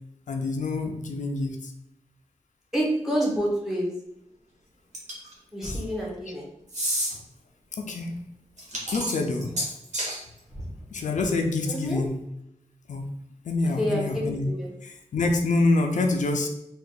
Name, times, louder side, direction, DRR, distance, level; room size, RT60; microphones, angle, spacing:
voice 1, 0.3-1.7 5.6-5.8 7.8-8.2 8.9-9.5 10.9-12.2 12.9-13.1 13.4-14.5 14.8-16.5, left 3 dB, 85° left, 4 dB, 0.5 m, -26 dB
voice 2, 2.7-3.9 5.5-6.5 10.5-10.6 11.7-12.0 13.8-14.7, equal, 5° right, -3 dB, 1.2 m, -28 dB
sound 1, 4.9-5.3 6.7-7.1 8.6-10.2, equal, 70° right, 1.4 m, -29 dB
3.6 x 2.5 x 3.8 m, 0.83 s
wide cardioid pair, 125°, 12 cm